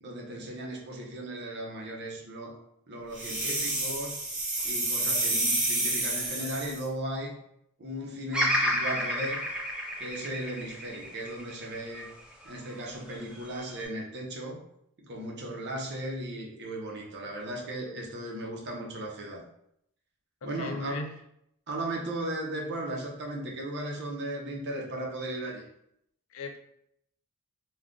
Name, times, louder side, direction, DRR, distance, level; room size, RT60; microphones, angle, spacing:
voice 1, 0.0-2.6 2.9-4.2 4.6-7.4 7.8-9.4 10.0-12.1 12.4-14.6 15.0-19.4 20.4-21.1 21.7-25.6, right 1 dB, 55° right, -1 dB, 0.7 m, -36 dB
sound 1, 3.2-6.8, right 2 dB, 40° right, 1.0 m, -29 dB
Bird vocalization bird call bird song, 8.3-12.6 13.1-13.9, equal, 5° right, 0.4 m, -31 dB
voice 2, 20.6-21.1 26.3-26.6, left 3 dB, 70° left, 4 dB, 0.5 m, -36 dB
2.4 x 2.2 x 3.6 m, 0.74 s
head